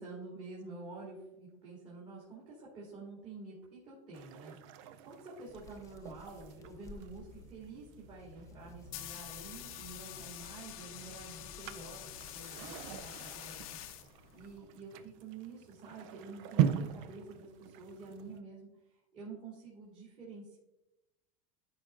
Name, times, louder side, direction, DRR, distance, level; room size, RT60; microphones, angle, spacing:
voice 1, 0.0-20.6, right 3 dB, 35° right, -6 dB, 2.5 m, -49 dB
sound 1, 4.1-18.4, right 10 dB, 60° right, 0.5 m, -41 dB
Hands, 5.5-13.9, left 2 dB, 15° left, 0.6 m, -57 dB
sound 2, 8.6-14.6, left 12 dB, 75° left, 0.7 m, -47 dB
12.5 x 5.0 x 2.5 m, 0.96 s
supercardioid pair, 150°, 18 cm